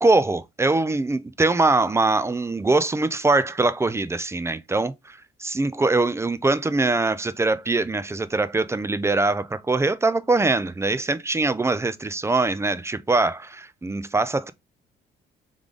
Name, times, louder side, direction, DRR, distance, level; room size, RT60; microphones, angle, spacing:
voice 1, 0.0-14.5, right 3 dB, 15° right, 0.4 m, -22 dB
3.6 x 3.4 x 3.7 m
cardioid pair, 90°, 20 cm